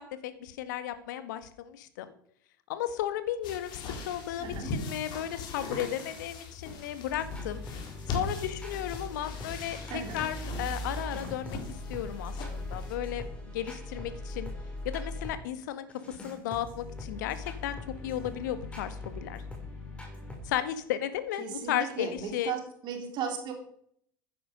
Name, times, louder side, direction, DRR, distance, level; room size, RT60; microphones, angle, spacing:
voice 1, 0.0-2.1 2.7-7.6 8.1-13.3 13.5-14.5 14.9-17.8 18.0-19.4 20.5-22.5, left 11 dB, 60° left, 11 dB, 1.7 m, -34 dB
sound 1, 3.4-13.0, left 3 dB, 45° left, 4.1 m, -40 dB
sound 2, 7.1-15.4 15.9-20.4, left 1 dB, 10° left, 6.0 m, -40 dB
voice 2, 9.9-10.3 21.4-23.5, right 7 dB, 40° right, 4 dB, 3.6 m, -36 dB
15.5 x 10.5 x 5.3 m, 0.64 s
figure-of-eight pair, 75°, 11 cm